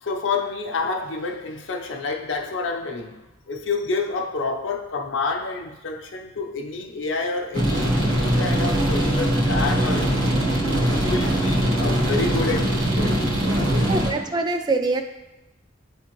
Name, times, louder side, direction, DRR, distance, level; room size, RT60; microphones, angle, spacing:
voice 1, 0.0-10.4 10.9-13.9 14.2-14.3, left 3 dB, 70° left, 3 dB, 0.6 m, -29 dB
sound 1, 7.5-14.1, right 1 dB, 75° right, 1.3 m, -21 dB
voice 2, 13.9-15.0, right 3 dB, 20° right, 6 dB, 0.3 m, -24 dB
9.0 x 3.6 x 3.0 m, 0.96 s
head